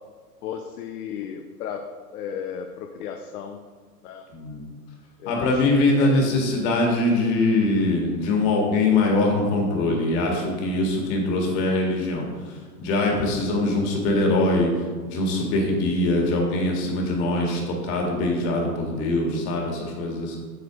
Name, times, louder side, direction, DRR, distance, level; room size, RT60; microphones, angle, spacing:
voice 1, 0.4-3.6 4.0-4.3 5.2-6.5, left 7 dB, 65° left, 5 dB, 0.8 m, -35 dB
voice 2, 4.3-4.6 5.3-14.7 15.0-20.4, left 2 dB, 45° left, 0 dB, 2.1 m, -23 dB
8.2 x 6.1 x 3.5 m, 1.5 s
hypercardioid pair, 120°, 48 cm